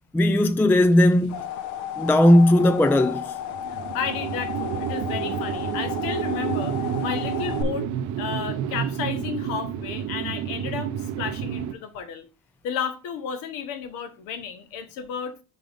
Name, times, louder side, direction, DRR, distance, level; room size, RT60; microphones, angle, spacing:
voice 1, 0.1-1.4 2.0-3.3, left 1 dB, 5° left, 0.3 m, -17 dB
sound 1, 0.9-7.6, left 10 dB, 60° left, 0.9 m, -33 dB
sound 2, 3.5-11.7, right 10 dB, 60° right, 0.7 m, -30 dB
voice 2, 3.7-7.9 8.2-12.3 12.6-15.4, left 7 dB, 80° left, 1.3 m, -32 dB
4.7 x 3.9 x 5.1 m
cardioid pair, 110°, 33 cm